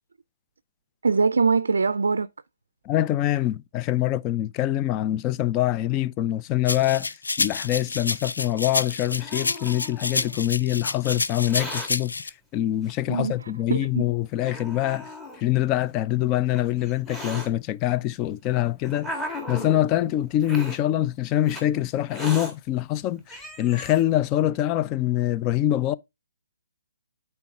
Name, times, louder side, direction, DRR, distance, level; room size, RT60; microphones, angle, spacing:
voice 1, 1.0-2.3 13.1-14.0, right 4 dB, 75° right, 0.4 m, -23 dB
voice 2, 2.9-7.1 7.4-12.1 12.5-15.1 15.4-19.1 19.5-25.9, left 13 dB, 25° left, 0.4 m, -24 dB
sound 1, 6.7-12.3, left 3 dB, 80° left, 0.6 m, -29 dB
Hiss, 8.7-10.4 11.3-11.9 12.9-13.0 13.8-13.9 14.4-15.4 16.3-17.5 18.3-19.8 20.4-20.8 21.5-21.6 22.1-22.5 23.0-23.1 23.3-24.0, equal, 5° left, 1.7 m, -37 dB
9.3 x 4.5 x 3.6 m
figure-of-eight pair, 140°, 0 cm